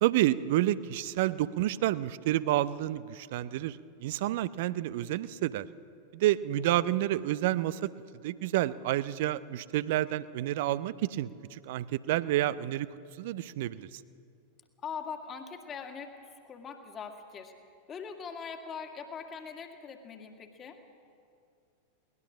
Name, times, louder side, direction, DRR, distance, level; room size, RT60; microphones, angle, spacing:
voice 1, 0.0-5.7 6.1-7.9 8.2-12.9 13.2-13.9, right 14 dB, 50° right, 17 dB, 0.6 m, -29 dB
voice 2, 14.8-16.2 16.4-17.5 17.9-20.8, left 6 dB, 25° left, 5 dB, 2.0 m, -41 dB
21.5 x 19.0 x 6.3 m, 2.4 s
figure-of-eight pair, 90°, 0 cm